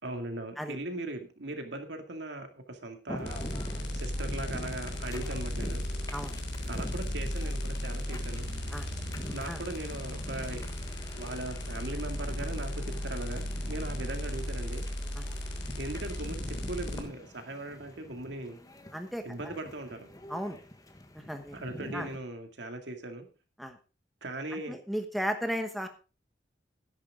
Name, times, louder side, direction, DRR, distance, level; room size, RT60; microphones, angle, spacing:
voice 1, 0.0-3.4 3.9-5.8 6.7-8.5 9.3-10.7 11.1-14.9 15.8-18.6 19.2-20.1 21.5-23.3 24.2-24.8, right 2 dB, 70° right, 5 dB, 2.3 m, -39 dB
sound 1, 3.1-22.2, left 1 dB, 20° left, 1.3 m, -45 dB
sound 2, 3.2-17.0, left 1 dB, 75° left, 3.4 m, -35 dB
voice 2, 18.9-19.5 20.3-20.6 21.3-21.5 21.9-22.1 23.6-23.8 24.7-25.9, equal, ahead, 6 dB, 1.1 m, -34 dB
13.0 x 10.5 x 3.7 m, 0.34 s
head